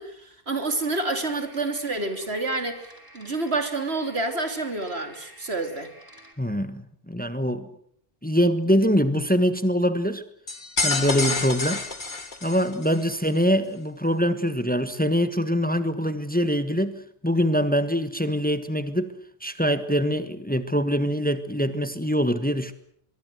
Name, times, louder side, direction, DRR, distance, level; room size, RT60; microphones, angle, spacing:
voice 1, 0.0-2.9 3.1-5.9, right 2 dB, 85° right, 3.6 m, -28 dB
sound 1, 0.8-6.3, equal, 20° right, 4.5 m, -50 dB
voice 2, 6.4-7.7 8.2-10.2 10.8-11.8 12.4-19.1 19.4-22.7, equal, 10° left, 1.4 m, -24 dB
sound 2, 10.5-13.0, left 3 dB, 50° left, 2.4 m, -28 dB
23.5 x 23.0 x 7.9 m
omnidirectional pair, 1.0 m